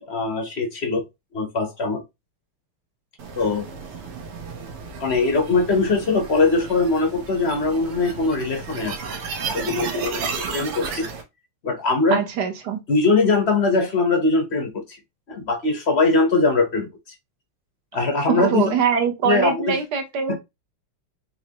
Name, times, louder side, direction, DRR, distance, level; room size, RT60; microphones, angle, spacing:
voice 1, 0.1-1.0 1.3-2.0 3.3-3.7 5.0-8.9 9.5-10.3 10.5-11.1 11.6-12.2 12.9-14.7 15.3-16.9 17.9-18.7 19.2-19.8 20.3-20.4, left 3 dB, 45° left, 0.9 m, -21 dB
sound 1, 3.2-11.2, right 5 dB, 80° right, 2.1 m, -33 dB
voice 2, 12.1-12.8 18.3-20.4, right 7 dB, 55° right, 1.4 m, -23 dB
5.8 x 3.1 x 2.9 m
omnidirectional pair, 2.4 m